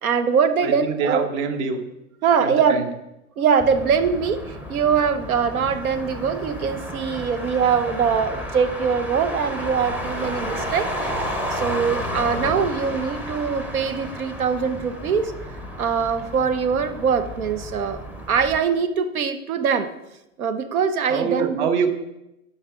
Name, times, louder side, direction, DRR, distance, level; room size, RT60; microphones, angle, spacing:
voice 1, 0.0-1.3 2.2-2.9 3.4-4.4 4.7-11.1 11.5-15.3 15.8-18.0 18.3-19.9 20.4-21.7, right 6 dB, 75° right, 10 dB, 1.1 m, -22 dB
voice 2, 0.6-1.8 2.4-2.9 21.1-21.9, right 6 dB, 50° right, 6 dB, 1.6 m, -24 dB
Motor vehicle (road), 3.6-18.6, equal, 5° right, 0.6 m, -32 dB
11.0 x 7.1 x 3.8 m, 0.90 s
hypercardioid pair, 125°, 43 cm